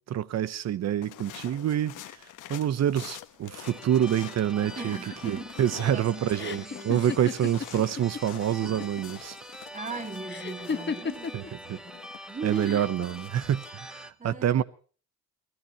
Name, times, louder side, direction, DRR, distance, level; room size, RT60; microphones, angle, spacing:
voice 1, 0.1-2.0 2.5-5.0 5.2-9.4 11.3-11.4 11.7-11.8 12.4-14.6, right 10 dB, 60° right, 0.9 m, -27 dB
sound 1, 1.0-13.7, left 13 dB, 85° left, 1.2 m, -47 dB
sound 2, 3.6-14.1, equal, ahead, 0.9 m, -45 dB
sound 3, 4.6-8.2 8.5-9.2 10.3-11.5 12.5-13.0, left 5 dB, 35° left, 1.5 m, -35 dB
voice 2, 4.8-7.0 9.7-12.9 13.6-13.8 14.2-14.6, right 4 dB, 25° right, 3.0 m, -39 dB
29.0 x 16.5 x 3.0 m
cardioid pair, 90°, 30 cm